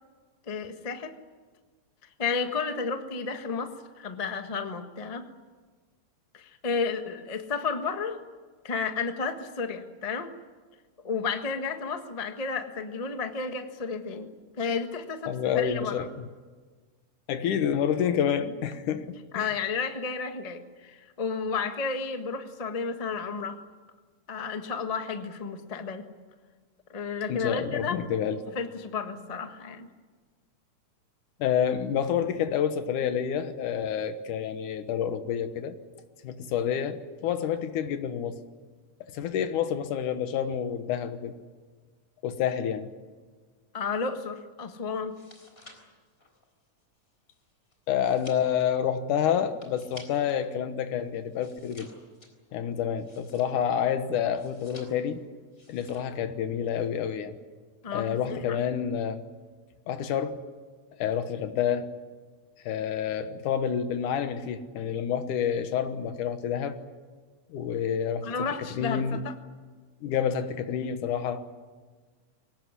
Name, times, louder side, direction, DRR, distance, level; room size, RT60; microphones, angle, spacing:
voice 1, 0.5-1.2 2.2-5.3 6.3-8.2 8.6-10.3 11.0-14.3 14.6-16.1 19.3-23.6 24.3-26.1 26.9-28.0 28.5-29.9 43.7-45.2 57.8-58.6 68.2-69.3, left 5 dB, 35° left, 0.6 m, -32 dB
voice 2, 15.3-16.1 17.3-19.5 27.3-28.4 31.4-35.8 36.2-38.4 39.1-41.4 42.2-42.9 47.9-51.9 52.5-55.2 55.7-57.4 57.9-59.2 59.9-60.4 61.0-61.9 62.6-66.8 67.5-68.3 68.8-69.2 70.0-71.4, left 8 dB, 90° left, 2.7 m, -28 dB
sound 1, 45.0-50.5 50.8-53.8 54.3-55.2 55.5-56.2 56.5-56.9, left 1 dB, 20° left, 4.0 m, -53 dB
23.5 x 19.5 x 9.8 m
omnidirectional pair, 3.5 m